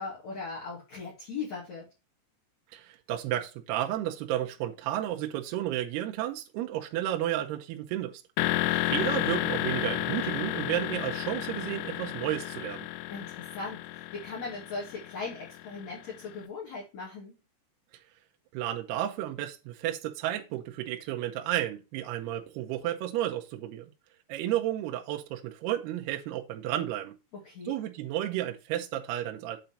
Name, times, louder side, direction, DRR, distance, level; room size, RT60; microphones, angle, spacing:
voice 1, 0.0-1.9 8.6-9.0 13.1-17.3 27.3-27.8, left 4 dB, 45° left, 3.0 m, -39 dB
voice 2, 2.7-8.2 8.9-12.9 18.5-23.9 24.3-27.2 27.7-29.6, right 13 dB, 80° right, 2.7 m, -32 dB
sound 1, 8.4-16.2, left 16 dB, 85° left, 2.6 m, -32 dB
7.9 x 4.5 x 5.6 m
omnidirectional pair, 5.1 m